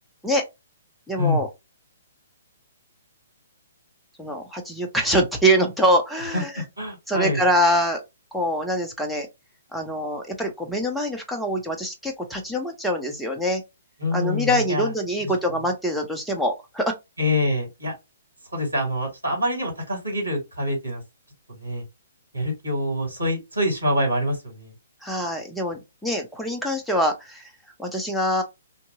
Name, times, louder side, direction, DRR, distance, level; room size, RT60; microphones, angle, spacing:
voice 1, 1.1-1.5 4.2-6.6 7.1-8.0 8.3-9.3 9.7-13.6 14.1-16.9 25.0-27.5 27.8-28.4, equal, ahead, 0.6 m, -24 dB
voice 2, 6.3-7.4 14.0-14.9 17.2-17.9 18.5-21.0 21.5-21.8 22.3-24.7, left 1 dB, 80° right, 2.0 m, -25 dB
2.7 x 2.6 x 2.5 m
figure-of-eight pair, 125°, 0 cm